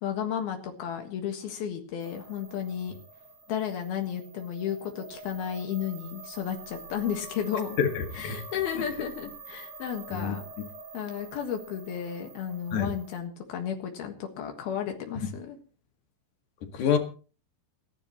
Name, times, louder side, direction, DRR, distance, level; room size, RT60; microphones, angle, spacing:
voice 1, 0.0-2.9 3.5-7.8 8.1-10.4 10.9-15.6, left 9 dB, 75° left, 4 dB, 3.4 m, -33 dB
sound 1, 2.0-13.2, right 3 dB, 40° right, 5.1 m, -47 dB
voice 2, 7.8-8.4 10.1-10.4 12.7-12.9 16.6-17.0, left 7 dB, 60° left, 5 dB, 3.1 m, -27 dB
29.0 x 11.0 x 3.0 m, 0.37 s
omnidirectional pair, 4.4 m